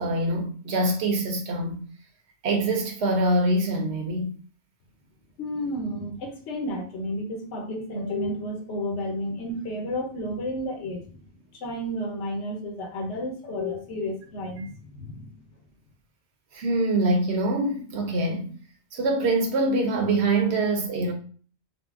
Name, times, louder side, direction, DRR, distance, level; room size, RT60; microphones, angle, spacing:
voice 1, 0.0-1.8 2.4-4.3 14.6-14.7 16.5-18.5 18.9-21.1, right 2 dB, 75° right, 1.0 m, -24 dB
voice 2, 5.4-11.1 11.5-15.4, left 1 dB, 90° left, 1.0 m, -32 dB
3.8 x 2.1 x 2.3 m
omnidirectional pair, 1.1 m